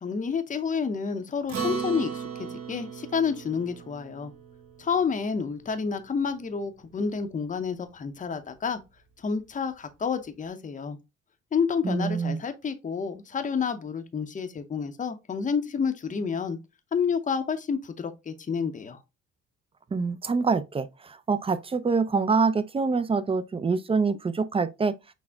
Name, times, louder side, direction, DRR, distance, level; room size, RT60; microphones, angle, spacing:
voice 1, 0.0-4.3 4.8-8.8 9.2-11.0 11.5-16.6 16.9-19.0, left 6 dB, 25° left, 0.6 m, -29 dB
Acoustic guitar, 1.5-6.2, right 6 dB, 70° right, 1.8 m, -37 dB
voice 2, 11.8-12.4 19.9-24.9, right 4 dB, 20° right, 0.4 m, -25 dB
6.0 x 2.1 x 3.4 m
cardioid pair, 90°, 30 cm